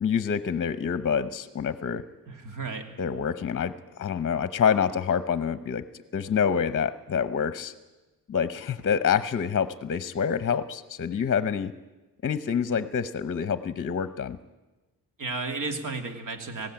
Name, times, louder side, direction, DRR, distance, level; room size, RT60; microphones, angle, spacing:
voice 1, 0.0-2.1 3.0-5.9 6.1-7.7 8.3-11.7 12.2-14.4, left 7 dB, 40° left, 13 dB, 0.8 m, -27 dB
voice 2, 2.3-2.9 15.2-16.7, right 3 dB, 60° right, 6 dB, 2.6 m, -33 dB
19.5 x 16.5 x 8.9 m, 1.1 s
cardioid pair, 130°, 35 cm